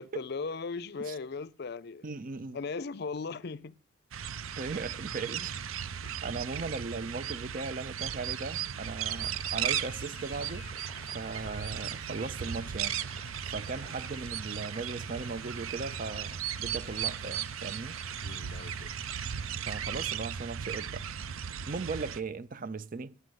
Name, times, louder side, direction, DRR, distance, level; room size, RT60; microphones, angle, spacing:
voice 1, 0.0-2.0 2.5-3.8 6.0-6.1 18.2-18.9, left 4 dB, 55° left, 0.5 m, -38 dB
voice 2, 2.0-2.6 4.6-5.6 6.2-10.7 11.1-13.0 13.4-18.0 18.5-18.6 19.7-21.0 21.7-23.1, right 4 dB, 40° right, 0.5 m, -38 dB
sound 1, 4.1-22.2, right 9 dB, 90° right, 0.6 m, -36 dB
sound 2, 9.1-19.8, left 5 dB, 30° left, 0.8 m, -53 dB
9.7 x 7.7 x 9.4 m
head